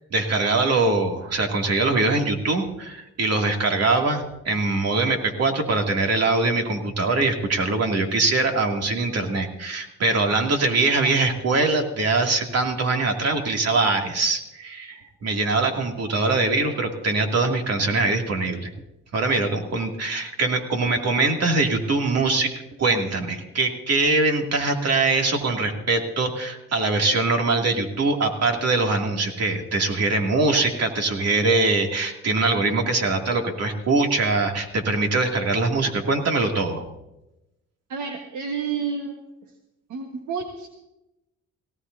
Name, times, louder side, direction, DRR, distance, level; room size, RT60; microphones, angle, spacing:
voice 1, 0.1-18.7 19.1-22.5 22.8-36.8, right 3 dB, 55° right, 2 dB, 2.6 m, -22 dB
voice 2, 37.9-39.2 39.9-40.7, right 6 dB, 75° right, 3 dB, 1.5 m, -30 dB
18.0 x 18.0 x 2.7 m, 0.92 s
cardioid pair, 90°, 30 cm